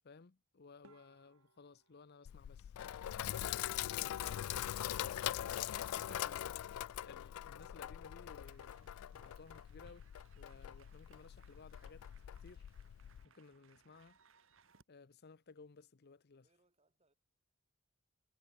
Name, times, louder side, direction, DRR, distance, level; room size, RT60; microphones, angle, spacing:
voice 1, 0.0-2.7 4.0-10.1 10.4-12.0 12.3-12.7 13.2-14.2 14.9-16.4, left 4 dB, 50° left, 0.7 m, -59 dB
sound 1, 0.8-3.3 5.6-5.7 6.1-8.9 9.1-9.9 10.2-10.4 10.7-10.8 11.4-11.8, right 3 dB, 85° right, 3.1 m, -69 dB
Sink (filling or washing), 2.3-13.3, left 12 dB, 80° left, 0.3 m, -42 dB
sound 2, 8.4-14.8, right 5 dB, 60° right, 1.6 m, -68 dB
voice 2, 16.3-17.1, right 2 dB, 30° right, 4.9 m, -81 dB
head